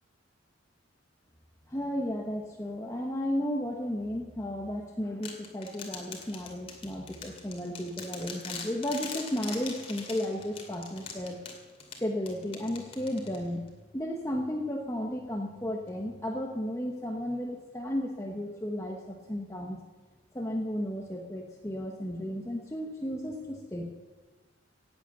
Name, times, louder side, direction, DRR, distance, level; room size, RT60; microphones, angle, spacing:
voice 1, 1.7-11.5 12.0-13.7 13.9-19.8 20.3-23.9, left 1 dB, 15° left, 0 dB, 1.1 m, -34 dB
sound 1, 5.2-13.7, left 5 dB, 30° left, 2.3 m, -42 dB
18.5 x 8.3 x 6.9 m, 1.3 s
head